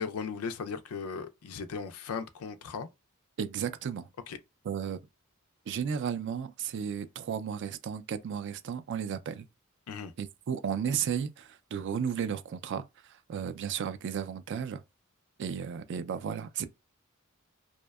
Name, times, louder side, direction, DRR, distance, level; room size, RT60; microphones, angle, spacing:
voice 1, 0.0-2.9 4.3-4.4 9.9-10.1, left 5 dB, 85° left, 0.4 m, -37 dB
voice 2, 3.4-4.1 4.6-5.0 5.7-9.5 10.2-14.8 15.4-16.7, right 7 dB, 55° right, 0.3 m, -34 dB
2.6 x 2.1 x 2.2 m
head